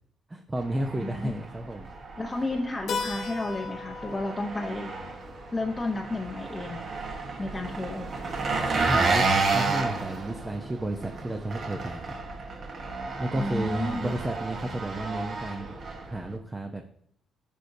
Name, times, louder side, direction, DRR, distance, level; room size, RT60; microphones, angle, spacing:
voice 1, 0.3-1.9 8.8-12.1 13.2-15.8 16.1-16.8, right 1 dB, 20° right, 4 dB, 0.7 m, -32 dB
Engine, 0.6-16.4, right 3 dB, 50° right, 1.3 m, -31 dB
voice 2, 1.0-1.3 2.2-4.9 5.5-6.9 7.4-8.1 13.3-14.1, left 2 dB, 20° left, 1 dB, 0.8 m, -32 dB
Keyboard (musical), 2.9-7.3, left 5 dB, 65° left, 1.3 m, -39 dB
8.7 x 5.1 x 2.7 m, 0.66 s
cardioid pair, 90°, 0 cm